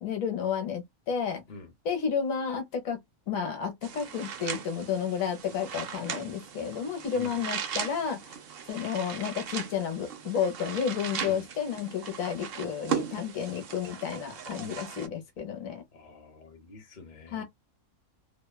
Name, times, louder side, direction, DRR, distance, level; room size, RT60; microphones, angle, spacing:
voice 1, 0.0-1.4 1.8-3.0 3.3-8.4 8.7-15.8 17.3-17.4, left 7 dB, 75° left, 1.2 m, -31 dB
sound 1, 3.8-15.1, right 7 dB, 60° right, 0.6 m, -38 dB
voice 2, 15.9-17.4, left 4 dB, 40° left, 0.8 m, -46 dB
2.8 x 2.1 x 2.2 m
omnidirectional pair, 1.5 m